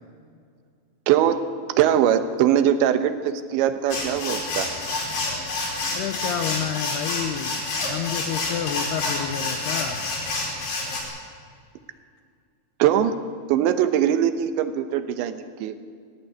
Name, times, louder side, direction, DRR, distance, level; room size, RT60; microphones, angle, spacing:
voice 1, 1.1-1.4 1.8-4.7 12.8-13.2 13.5-15.8, right 10 dB, 75° right, 10 dB, 3.1 m, -21 dB
sound 1, 3.9-11.0, left 3 dB, 55° left, 6.0 m, -28 dB
voice 2, 5.9-10.0, left 9 dB, 80° left, 7 dB, 2.4 m, -30 dB
20.0 x 15.0 x 9.7 m, 2.2 s
omnidirectional pair, 5.7 m